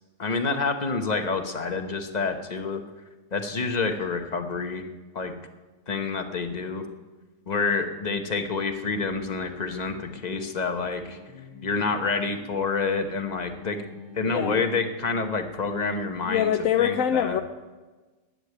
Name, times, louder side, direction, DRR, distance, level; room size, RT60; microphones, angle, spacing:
voice 1, 0.2-2.8 3.3-4.9 5.1-5.3 5.9-6.9 7.5-11.2 11.6-13.8 14.1-16.5 16.8-17.4, left 4 dB, 35° left, 6 dB, 1.1 m, -28 dB
sound 1, 8.8-15.3, left 4 dB, 25° right, 2.5 m, -46 dB
voice 2, 14.2-14.6 16.3-17.4, left 9 dB, 80° left, 6 dB, 1.0 m, -24 dB
11.5 x 9.0 x 9.1 m, 1.3 s
omnidirectional pair, 1.4 m